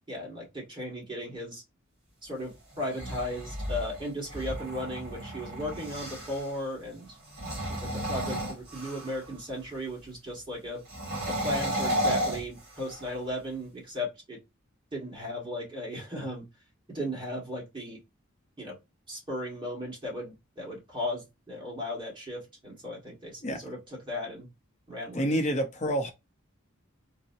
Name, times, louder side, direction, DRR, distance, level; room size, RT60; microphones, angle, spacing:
voice 1, 0.1-1.6 2.2-7.2 7.7-10.8 11.3-14.4 14.9-16.4 16.9-18.0 18.6-18.7 19.1-23.8 24.0-24.5 24.9-25.4, left 1 dB, 25° right, 1.4 m, -36 dB
sound 1, 2.7-6.5 7.2-9.3 10.9-13.2, equal, 50° right, 2.0 m, -33 dB
voice 2, 25.1-26.1, equal, 35° left, 0.6 m, -28 dB
3.9 x 2.0 x 2.6 m
head